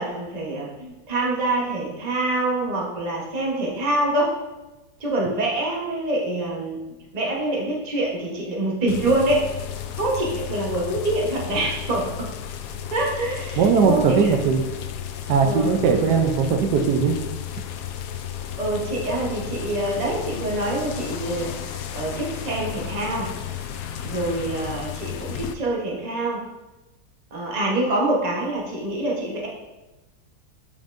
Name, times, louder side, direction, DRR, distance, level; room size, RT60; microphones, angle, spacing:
voice 1, 0.0-4.3 5.0-6.8 7.1-9.5 10.0-12.3 12.9-14.3 15.4-16.2 18.6-23.3 24.0-26.4 27.3-29.5, right 1 dB, 30° right, -2 dB, 1.0 m, -25 dB
sound 1, 8.9-25.5, left 9 dB, 70° left, 0.9 m, -33 dB
voice 2, 13.6-14.6 15.3-17.2, right 5 dB, 80° right, 4 dB, 1.3 m, -19 dB
8.7 x 5.2 x 2.6 m, 1.1 s
omnidirectional pair, 1.8 m